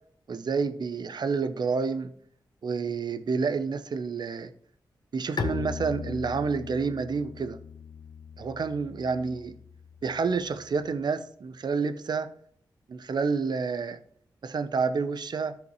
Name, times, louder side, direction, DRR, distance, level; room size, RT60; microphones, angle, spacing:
voice 1, 0.3-2.1 2.6-4.5 5.1-7.6 8.4-9.5 10.0-12.3 12.9-14.0 14.4-15.6, right 5 dB, 65° right, 10 dB, 0.7 m, -29 dB
Bowed string instrument, 5.4-11.0, left 5 dB, 65° left, 0.6 m, -38 dB
13.5 x 5.1 x 3.1 m, 0.63 s
cardioid pair, 65°, 8 cm